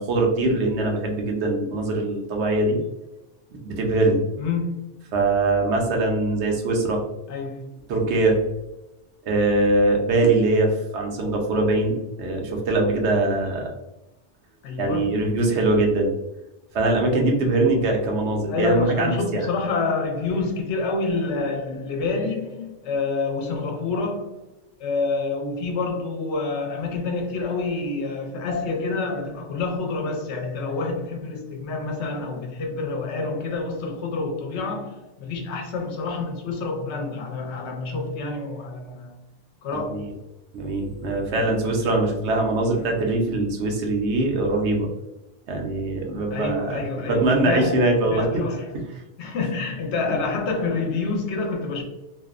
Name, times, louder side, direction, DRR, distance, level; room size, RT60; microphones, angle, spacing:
voice 1, 0.0-2.8 3.6-4.2 5.1-7.0 7.9-8.4 9.3-13.7 14.8-16.1 16.7-19.4 39.8-40.0 40.5-44.9 45.5-48.4, right 2 dB, 75° right, 0.9 m, -22 dB
voice 2, 4.3-4.9 7.3-7.6 14.6-15.2 18.5-24.4 24.8-39.1 39.6-40.0 46.3-48.7 49.2-51.8, left 3 dB, 75° left, 0.8 m, -27 dB
2.5 x 2.0 x 2.3 m
omnidirectional pair, 1.2 m